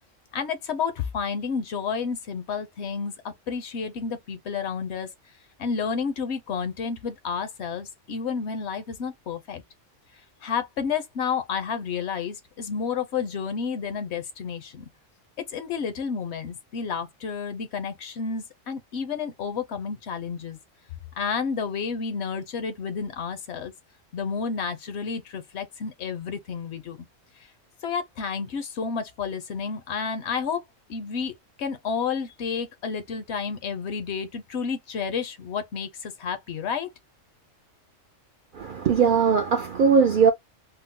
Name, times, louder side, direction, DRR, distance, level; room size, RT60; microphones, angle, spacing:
voice 1, 0.3-5.1 5.6-9.6 10.4-14.9 15.5-20.6 21.2-23.7 24.1-27.0 27.8-30.6 30.9-31.3 31.6-36.9, left 6 dB, 65° left, 0.8 m, -30 dB
voice 2, 38.5-40.3, right 6 dB, 65° right, 0.5 m, -20 dB
3.6 x 2.0 x 2.7 m
omnidirectional pair, 1.3 m